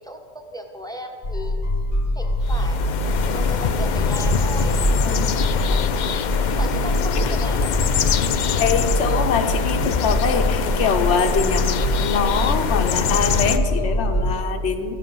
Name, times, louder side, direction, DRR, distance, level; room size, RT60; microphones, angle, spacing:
voice 1, 0.0-1.6 2.1-2.9 3.3-4.8 5.2-6.3 6.6-7.8, equal, 5° left, 3 dB, 0.9 m, -36 dB
sound 1, 1.2-14.3, left 1 dB, 35° left, 1.0 m, -23 dB
sound 2, 2.4-13.6, left 7 dB, 55° left, 0.5 m, -25 dB
voice 2, 8.6-15.0, left 5 dB, 85° left, 5 dB, 1.0 m, -23 dB
14.5 x 7.6 x 5.4 m, 2.5 s
omnidirectional pair, 1.2 m